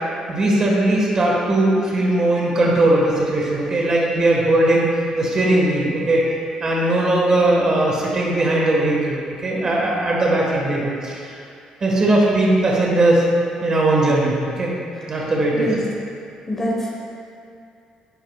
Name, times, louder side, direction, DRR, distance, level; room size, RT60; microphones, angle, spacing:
voice 1, 0.3-4.9 5.1-6.2 6.6-11.3 11.8-13.2 13.6-14.7 15.1-15.7, right 2 dB, 30° right, -4 dB, 1.5 m, -19 dB
voice 2, 16.5-16.9, equal, 15° left, -3 dB, 1.1 m, -24 dB
11.0 x 8.8 x 2.4 m, 2.4 s
cardioid pair, 160°, 2 cm